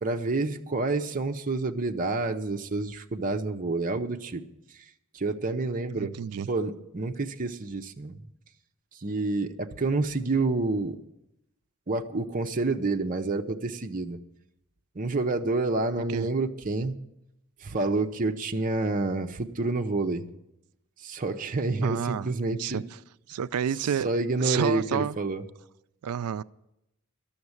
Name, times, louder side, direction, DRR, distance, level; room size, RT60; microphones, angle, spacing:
voice 1, 0.0-4.4 5.1-6.2 6.5-8.2 9.0-11.0 11.9-14.2 15.0-17.0 17.6-20.3 21.0-22.8 24.0-25.4, right 3 dB, 40° right, 3 dB, 0.7 m, -28 dB
voice 2, 6.0-6.5 16.1-16.3 21.8-22.3 22.6-22.8 23.3-24.1 24.4-25.2 26.0-26.4, right 8 dB, 80° right, 16 dB, 0.4 m, -29 dB
12.0 x 7.2 x 9.6 m, 0.87 s
head